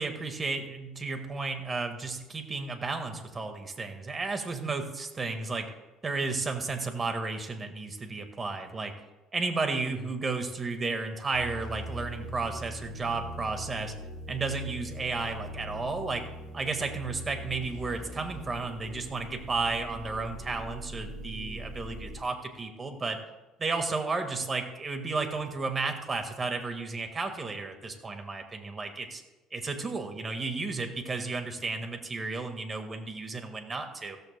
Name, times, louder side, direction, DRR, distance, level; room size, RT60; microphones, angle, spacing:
voice 1, 0.0-5.7 6.0-8.9 9.3-13.9 14.3-16.2 16.5-23.2 23.6-29.2 29.5-34.2, right 3 dB, 25° right, 6 dB, 1.7 m, -33 dB
sound 1, 11.3-22.2, right 1 dB, 70° right, 4.7 m, -41 dB
15.5 x 14.0 x 2.2 m, 1.1 s
cardioid pair, 110°, 0 cm